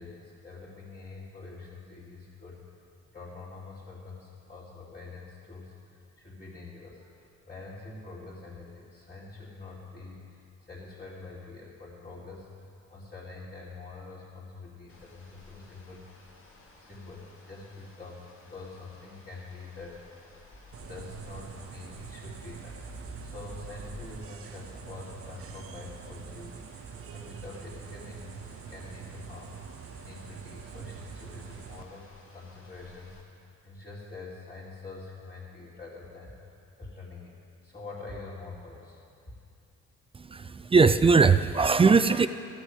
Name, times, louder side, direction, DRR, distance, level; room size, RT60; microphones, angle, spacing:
voice 1, 0.0-2.6 3.1-16.1 16.7-20.2 20.8-22.8 23.2-32.0 32.3-37.3 37.6-39.0, left 3 dB, 25° left, -9 dB, 2.7 m, -45 dB
sound 1, 14.9-33.2, equal, 45° left, 2.3 m, -52 dB
sound 2, 20.7-31.8, right 7 dB, 50° right, 0.7 m, -44 dB
voice 2, 40.1-42.3, right 4 dB, 20° right, 12 dB, 0.3 m, -20 dB
12.5 x 6.2 x 8.1 m, 2.7 s
cardioid pair, 90°, 30 cm